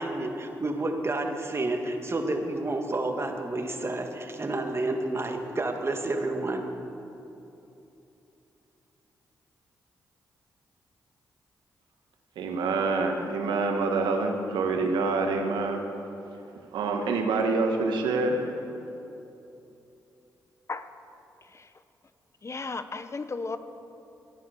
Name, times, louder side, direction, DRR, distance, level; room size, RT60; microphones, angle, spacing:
voice 1, 0.0-6.6, right 2 dB, 35° right, 3 dB, 1.9 m, -30 dB
voice 2, 12.4-15.8 16.7-18.4, right 3 dB, 80° right, 4 dB, 1.4 m, -26 dB
voice 3, 22.4-23.6, left 3 dB, 40° left, 11 dB, 0.9 m, -34 dB
14.0 x 9.5 x 6.9 m, 2.9 s
supercardioid pair, 45°, 8 cm